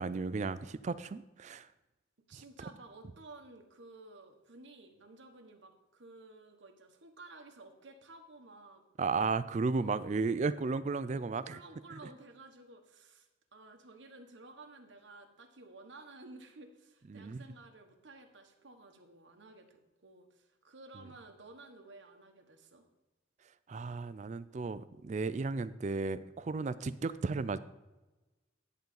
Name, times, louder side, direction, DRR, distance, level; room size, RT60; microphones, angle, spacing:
voice 1, 0.0-1.7 9.0-11.6 17.1-17.4 23.7-27.6, right 4 dB, 35° right, 14 dB, 0.3 m, -34 dB
voice 2, 2.3-8.8 9.7-10.0 11.4-22.9, right 2 dB, 70° right, 4 dB, 1.2 m, -54 dB
10.5 x 3.8 x 6.9 m, 1.1 s
head